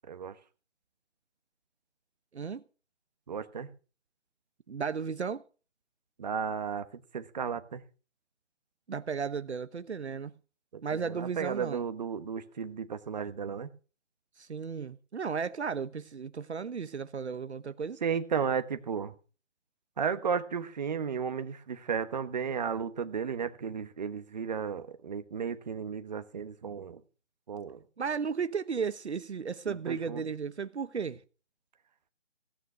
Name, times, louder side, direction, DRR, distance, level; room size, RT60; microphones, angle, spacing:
voice 1, 3.3-3.7 6.2-6.9 7.1-7.8 10.7-13.7 18.0-19.1 20.0-27.0 27.5-27.8 29.7-30.2, right 6 dB, 35° right, 1.2 m, -34 dB
voice 2, 4.7-5.4 8.9-10.3 10.8-11.8 14.4-18.0 28.0-31.2, right 6 dB, 65° right, 1.0 m, -34 dB
16.5 x 9.3 x 6.1 m
figure-of-eight pair, 160°, 36 cm